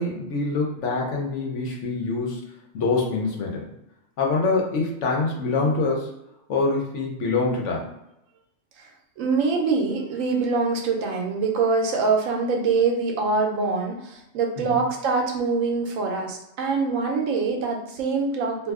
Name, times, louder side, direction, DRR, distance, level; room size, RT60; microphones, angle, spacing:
voice 1, 0.0-2.5 2.7-3.7 4.2-6.1 6.5-7.9 14.7-14.8, left 3 dB, 65° left, -1 dB, 1.0 m, -25 dB
voice 2, 9.2-18.7, right 4 dB, 80° right, 2 dB, 1.0 m, -24 dB
2.6 x 2.3 x 3.5 m, 0.86 s
omnidirectional pair, 1.4 m